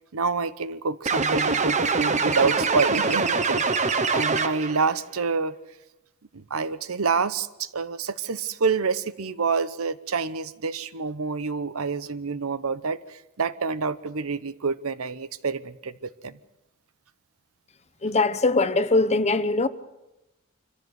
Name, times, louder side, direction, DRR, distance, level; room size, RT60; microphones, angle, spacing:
voice 1, 0.1-3.6 4.1-5.6 6.3-15.9 16.2-16.3, right 4 dB, 75° right, 0.9 m, -27 dB
sound 1, 1.1-4.8, right 4 dB, 35° right, 1.1 m, -24 dB
voice 2, 18.0-19.7, left 3 dB, 30° left, 0.9 m, -21 dB
25.5 x 15.0 x 8.1 m
head